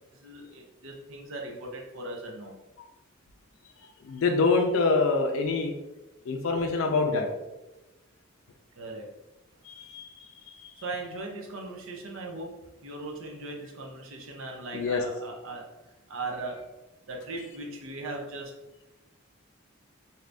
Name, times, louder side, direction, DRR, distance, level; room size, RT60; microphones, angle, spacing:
voice 1, 0.1-2.6 8.7-9.1 10.7-16.7 17.0-18.5, right 2 dB, 80° right, 0 dB, 0.6 m, -39 dB
voice 2, 4.0-5.7 6.3-7.3 9.6-10.3 10.6-10.7 14.7-15.0, left 3 dB, 80° left, 3 dB, 0.4 m, -25 dB
2.8 x 2.5 x 3.3 m, 1.0 s
head